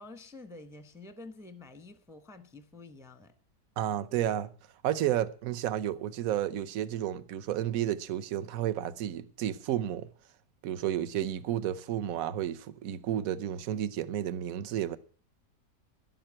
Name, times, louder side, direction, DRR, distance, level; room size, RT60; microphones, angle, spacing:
voice 1, 0.0-3.3, left 3 dB, 5° right, 0.7 m, -48 dB
voice 2, 3.8-4.5 4.8-10.1 10.6-15.0, right 11 dB, 65° right, 1.1 m, -31 dB
11.5 x 7.9 x 8.6 m
omnidirectional pair, 1.8 m